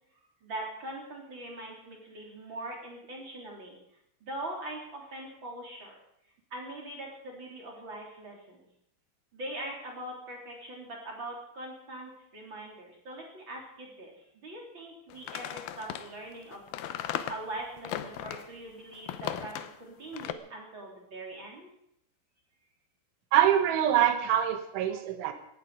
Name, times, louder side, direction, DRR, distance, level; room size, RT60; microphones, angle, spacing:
voice 1, 0.4-3.8 4.2-5.9 6.5-8.7 9.3-16.7 17.3-21.7, right 1 dB, 25° right, -1 dB, 3.6 m, -42 dB
sound 1, 15.1-18.5 18.9-19.8 20.1-20.3, left 11 dB, 85° left, 2.1 m, -37 dB
voice 2, 23.3-25.3, right 10 dB, 80° right, 7 dB, 3.7 m, -24 dB
18.0 x 15.0 x 5.0 m, 0.78 s
omnidirectional pair, 5.5 m